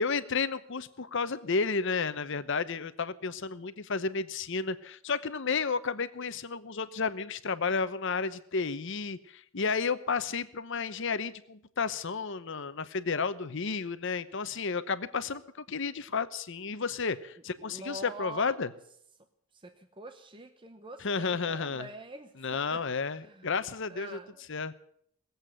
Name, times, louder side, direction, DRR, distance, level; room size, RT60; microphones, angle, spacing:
voice 1, 0.0-18.7 21.0-21.9 22.4-24.2 24.5-24.7, left 5 dB, 60° left, 13 dB, 0.9 m, -32 dB
voice 2, 17.6-18.6 19.5-22.8 23.2-23.5 23.9-24.4, right 2 dB, 25° right, 7 dB, 0.8 m, -45 dB
19.0 x 8.2 x 9.1 m, 0.69 s
head